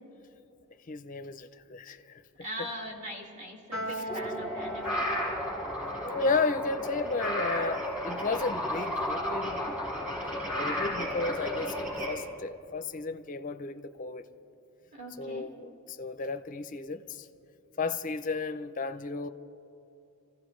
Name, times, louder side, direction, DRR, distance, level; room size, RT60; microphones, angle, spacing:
voice 1, 0.9-2.2 2.6-2.7 5.2-5.3 6.0-9.7 10.5-14.2 15.2-17.3 17.8-19.3, left 3 dB, 35° left, 0.5 m, -33 dB
voice 2, 2.4-5.0 14.9-15.5, equal, 30° right, 2.1 m, -41 dB
Piano, 3.7-10.2, right 1 dB, 70° right, 4.3 m, -43 dB
sound 1, 4.1-12.1, left 1 dB, 10° right, 4.2 m, -33 dB
27.0 x 15.5 x 3.2 m
head